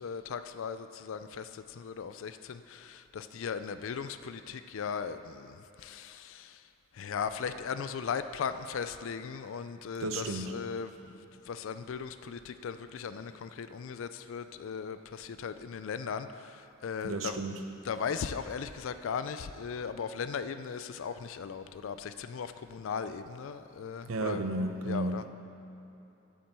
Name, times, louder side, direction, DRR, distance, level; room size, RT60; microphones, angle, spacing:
voice 1, 0.0-6.7 6.9-17.4 17.8-24.5 24.8-25.3, left 6 dB, 65° left, 11 dB, 0.4 m, -38 dB
voice 2, 10.0-10.5 17.0-17.6 24.1-25.3, right 2 dB, 70° right, 6 dB, 0.8 m, -33 dB
8.8 x 7.5 x 6.8 m, 2.9 s
head